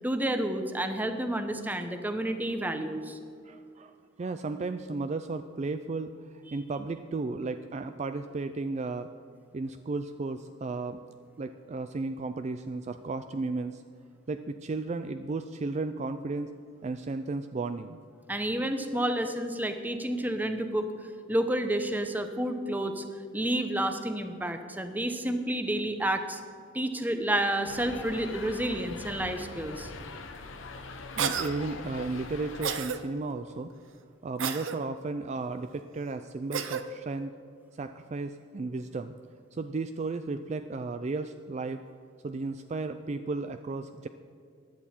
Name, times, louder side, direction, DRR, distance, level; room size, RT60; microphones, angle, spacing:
voice 1, 0.0-3.2 18.3-20.9 21.3-23.0 23.3-26.4 26.7-29.9, right 1 dB, 10° right, 7 dB, 0.8 m, -30 dB
voice 2, 3.4-9.1 9.5-11.0 11.4-13.8 14.3-16.5 16.8-18.0 31.2-33.7 34.2-37.3 37.8-39.1 39.5-41.8 42.2-44.1, right 3 dB, 35° right, 9 dB, 0.4 m, -34 dB
sound 1, 27.7-32.8, left 3 dB, 75° left, 0.9 m, -42 dB
Cough, 31.2-31.5 32.6-33.0 34.4-34.8 36.5-36.8, right 7 dB, 75° right, 0.8 m, -30 dB
15.5 x 11.0 x 4.4 m, 2.3 s
head